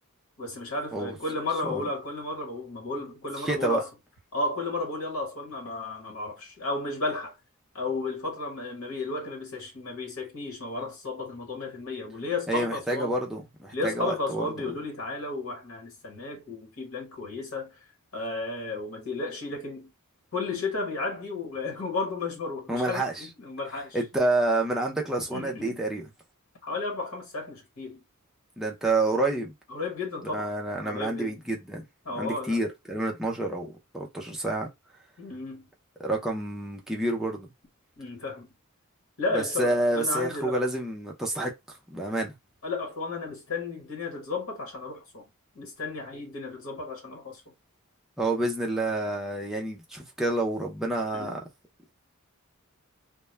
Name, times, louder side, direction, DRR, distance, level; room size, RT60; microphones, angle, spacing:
voice 1, 0.4-3.9 4.3-7.3 7.7-13.2 13.7-17.8 18.1-19.9 20.3-24.0 25.3-25.8 26.6-28.0 29.7-30.5 30.8-31.4 32.0-32.6 35.2-35.6 38.0-38.5 39.2-40.6 42.6-45.2 45.5-47.4 51.1-51.3, left 3 dB, 70° left, 1.2 m, -33 dB
voice 2, 3.4-3.8 12.5-14.5 22.7-23.2 23.9-26.1 28.6-29.5 30.3-31.8 32.1-33.7 33.9-34.7 36.0-37.5 39.3-42.3 48.2-51.4, right 2 dB, ahead, 0.4 m, -28 dB
2.2 x 2.1 x 3.1 m
head